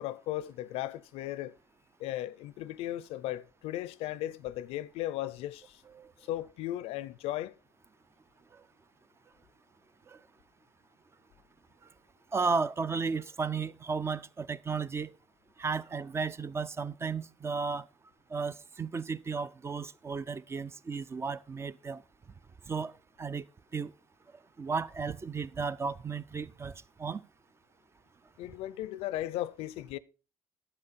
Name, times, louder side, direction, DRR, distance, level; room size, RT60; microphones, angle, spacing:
voice 1, 0.0-1.5 2.0-5.8 6.3-7.5 28.4-30.0, left 14 dB, 90° left, 0.5 m, -36 dB
voice 2, 12.3-15.1 15.6-17.9 18.3-22.0 22.7-22.9 23.2-23.4 23.7-23.9 24.6-26.7 27.0-27.2, right 5 dB, 25° right, 0.4 m, -34 dB
9.9 x 7.8 x 4.1 m
cardioid pair, 105°, 10 cm